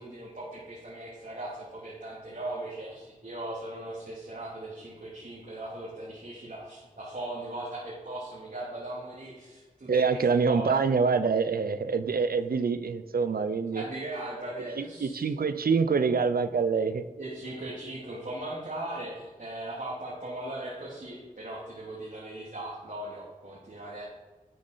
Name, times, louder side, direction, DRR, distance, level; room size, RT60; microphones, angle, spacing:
voice 1, 0.0-10.7 13.7-15.3 17.2-24.0, right 1 dB, 65° right, -7 dB, 2.6 m, -39 dB
voice 2, 9.9-13.8 14.8-17.1, right 5 dB, 80° right, 11 dB, 0.5 m, -26 dB
11.5 x 7.8 x 3.9 m, 1.2 s
wide cardioid pair, 65°, 15 cm